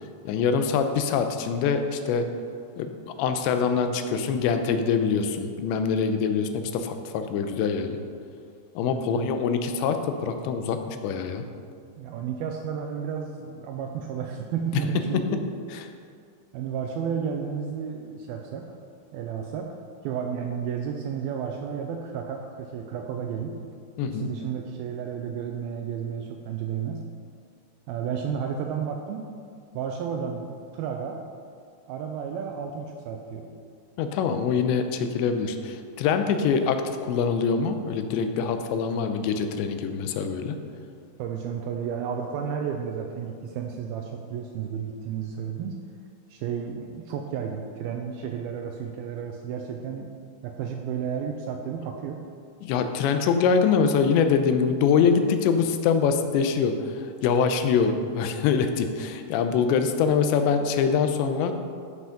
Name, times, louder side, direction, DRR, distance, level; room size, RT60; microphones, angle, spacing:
voice 1, 0.3-2.3 2.8-8.0 8.8-11.4 15.1-15.2 24.0-24.3 34.0-40.6 52.6-61.5, left 6 dB, 90° left, 7 dB, 3.0 m, -24 dB
voice 2, 8.8-9.3 12.0-15.4 16.5-18.7 19.1-19.7 20.0-23.6 24.0-27.1 27.9-29.3 29.7-31.2 31.9-33.5 41.2-45.8 46.3-50.1 50.4-52.2, right 7 dB, 85° right, 3 dB, 2.2 m, -32 dB
13.5 x 6.3 x 5.8 m, 2.2 s
omnidirectional pair, 4.9 m